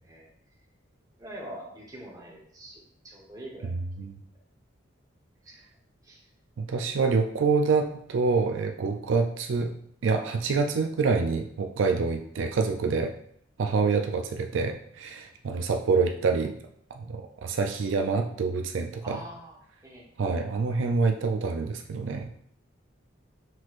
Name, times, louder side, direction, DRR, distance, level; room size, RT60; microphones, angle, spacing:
voice 1, 1.2-3.7 5.4-5.6 6.0-6.2 19.0-19.6 19.8-20.1, right 1 dB, 20° right, -3 dB, 1.0 m, -43 dB
voice 2, 3.7-4.2 6.6-9.7 10.0-13.1 13.6-16.5 16.9-19.2 20.2-22.3, right 4 dB, 80° right, 4 dB, 0.4 m, -26 dB
6.0 x 3.0 x 2.5 m, 0.65 s
head